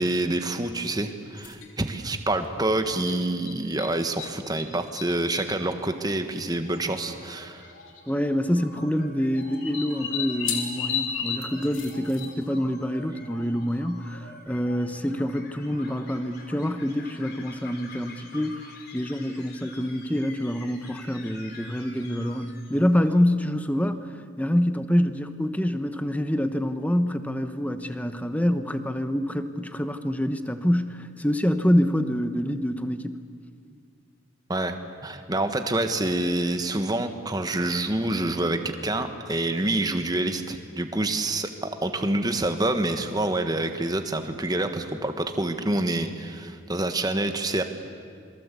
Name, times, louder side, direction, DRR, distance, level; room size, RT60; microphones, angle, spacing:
voice 1, 0.0-7.7 34.5-47.6, right 2 dB, 20° right, 7 dB, 1.4 m, -27 dB
sound 1, 1.4-1.7 3.0-4.3 4.6-5.5 6.5-6.6 6.7-6.8 7.8-8.1 9.4-12.6, left 7 dB, 70° left, 3.1 m, -32 dB
sound 2, 6.6-23.2, left 2 dB, 50° left, 3.8 m, -47 dB
voice 2, 8.1-18.6 18.9-24.1 24.4-33.2, equal, 5° left, 9 dB, 1.0 m, -26 dB
27.5 x 22.5 x 8.4 m, 2.4 s
head